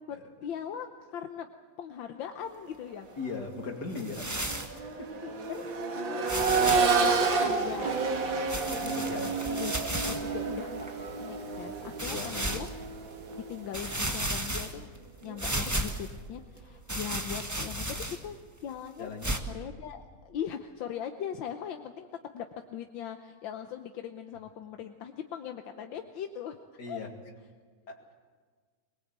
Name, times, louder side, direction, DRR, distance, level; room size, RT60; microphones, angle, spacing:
voice 1, 0.1-1.5 1.8-3.1 5.2-6.3 6.6-7.9 8.5-10.9 11.2-12.9 13.5-14.9 15.2-19.1 19.5-26.6 26.9-27.0, left 9 dB, 85° left, 6 dB, 1.6 m, -40 dB
Accelerating revving vroom, 3.1-3.3 3.7-13.6 15.3-15.4, right 4 dB, 90° right, 2.6 m, -30 dB
voice 2, 3.2-4.3 4.6-4.7 5.0-5.1 8.8-9.4 11.5-12.3 19.0-19.4 26.8-27.1 27.9-28.0, left 4 dB, 60° left, 2 dB, 3.0 m, -39 dB
sound 1, 4.0-4.8 5.5-5.6 6.3-7.0 8.5-10.3 10.9-11.0 12.0-12.7 13.3-13.4 13.7-15.0 15.4-16.1 16.9-18.3 19.2-19.4, right 1 dB, 10° right, 1.2 m, -33 dB
sound 2, 6.4-14.2, right 4 dB, 50° right, 1.7 m, -40 dB
22.5 x 21.0 x 8.1 m, 1.5 s
omnidirectional pair, 2.0 m